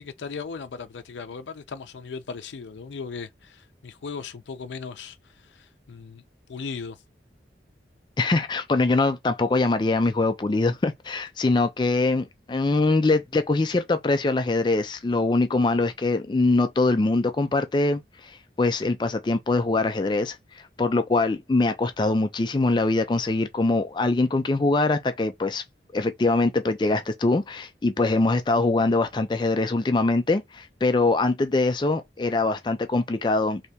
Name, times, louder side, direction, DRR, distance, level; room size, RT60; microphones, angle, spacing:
voice 1, 0.0-6.2 6.5-7.0, left 5 dB, 90° left, 0.4 m, -37 dB
voice 2, 8.2-25.6 25.9-33.6, left 3 dB, 25° left, 0.3 m, -23 dB
3.3 x 2.8 x 2.7 m
head